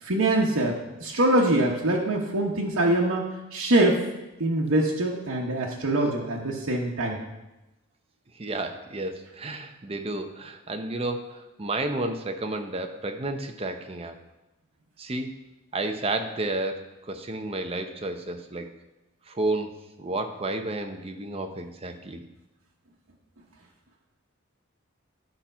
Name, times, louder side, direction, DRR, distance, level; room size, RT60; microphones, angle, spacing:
voice 1, 0.0-4.0 4.4-7.2, right 1 dB, 85° right, -3 dB, 1.0 m, -24 dB
voice 2, 8.4-14.1 15.0-15.3 15.7-18.7 19.3-19.7 20.0-22.2, right 2 dB, 30° right, 5 dB, 0.7 m, -31 dB
10.5 x 4.4 x 5.6 m, 1.0 s
head